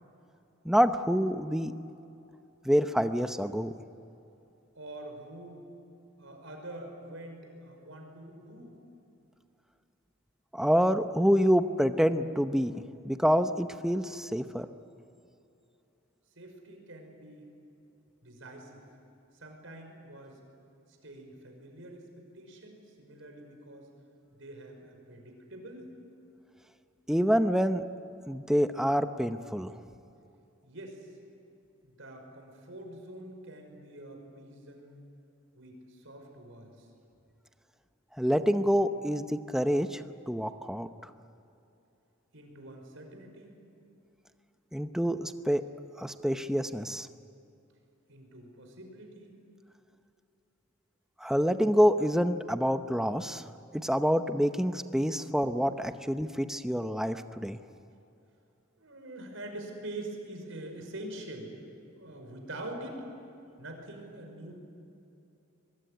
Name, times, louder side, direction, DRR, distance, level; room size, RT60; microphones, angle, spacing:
voice 1, 0.6-1.7 2.6-3.7 10.5-14.7 27.1-27.8 28.3-29.7 38.2-40.9 44.7-45.6 46.0-47.1 51.2-53.4 53.7-57.6, equal, ahead, 8 dB, 0.8 m, -27 dB
voice 2, 4.7-5.7 6.2-8.8 16.4-17.5 18.2-18.8 19.3-20.4 20.9-23.9 24.4-25.9 30.6-31.2 31.8-35.0 35.5-36.9 42.3-43.5 48.1-49.4 58.8-61.5 61.9-63.0 63.6-64.5, right 1 dB, 70° right, 3 dB, 5.7 m, -45 dB
23.5 x 23.0 x 9.5 m, 2.7 s
head